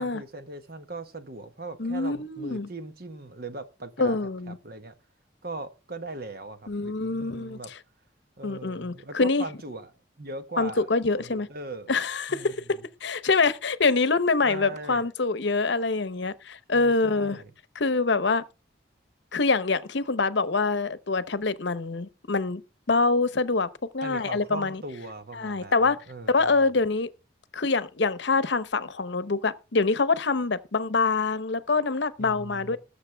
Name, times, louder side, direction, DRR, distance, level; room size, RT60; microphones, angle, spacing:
voice 1, 0.0-4.2 4.5-4.9 5.4-7.7 8.4-9.9 10.2-11.9 12.3-12.5 14.4-15.0 16.7-17.5 24.0-26.7 32.2-32.8, right 2 dB, 50° right, 1.4 m, -40 dB
voice 2, 1.8-2.7 4.0-4.6 6.7-7.6 8.4-9.4 10.6-11.5 11.9-12.6 13.0-17.4 17.7-18.4 19.3-22.6 22.9-23.7 23.9-24.8 25.3-26.0 26.3-27.1 27.5-32.8, left 3 dB, 65° left, 0.8 m, -25 dB
20.0 x 7.5 x 3.4 m
head